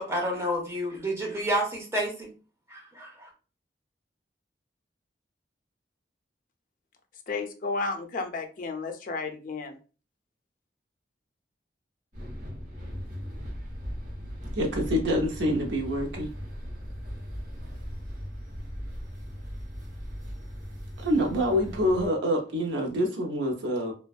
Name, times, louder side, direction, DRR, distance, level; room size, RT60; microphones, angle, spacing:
voice 1, 0.0-2.3 2.7-3.3, equal, 15° right, 0 dB, 0.7 m, -30 dB
voice 2, 7.3-9.7, left 3 dB, 50° left, 5 dB, 0.4 m, -32 dB
sound 1, 12.1-22.1, equal, 50° right, 1.0 m, -38 dB
voice 3, 14.5-16.3 21.0-23.9, equal, 85° right, 1 dB, 0.5 m, -26 dB
2.5 x 2.2 x 2.3 m, 0.36 s
head